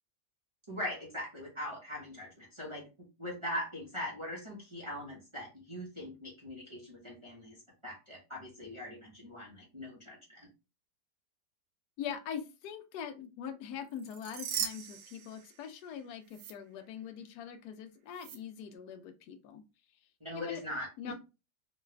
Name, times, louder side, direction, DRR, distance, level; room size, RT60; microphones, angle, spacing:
voice 1, 0.7-2.9 3.2-7.6 7.8-10.5 20.2-21.1, left 1 dB, 20° right, -4 dB, 0.9 m, -41 dB
voice 2, 12.0-19.6 20.3-20.6 21.0-21.1, left 8 dB, 75° left, 6 dB, 1.1 m, -42 dB
sound 1, 13.9-15.9 16.3-16.5 18.2-18.4, right 9 dB, 85° right, 1.2 m, -39 dB
3.2 x 2.3 x 3.1 m, 0.28 s
omnidirectional pair, 1.8 m